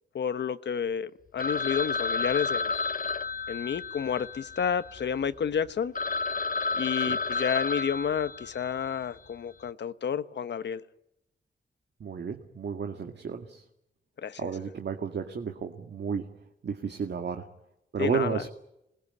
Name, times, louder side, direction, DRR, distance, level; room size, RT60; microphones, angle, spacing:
voice 1, 0.1-2.7 3.5-5.9 6.7-10.8 14.2-14.5 18.0-18.4, left 7 dB, 75° left, 13 dB, 1.1 m, -30 dB
Telephone, 1.4-5.2 5.6-5.7 5.9-8.8, left 4 dB, 50° left, 1.0 m, -31 dB
voice 2, 12.0-13.6 14.4-16.3 16.6-17.4 17.9-18.5, right 6 dB, 70° right, 5 dB, 2.0 m, -32 dB
28.0 x 20.5 x 9.7 m, 0.86 s
wide cardioid pair, 110°, 18 cm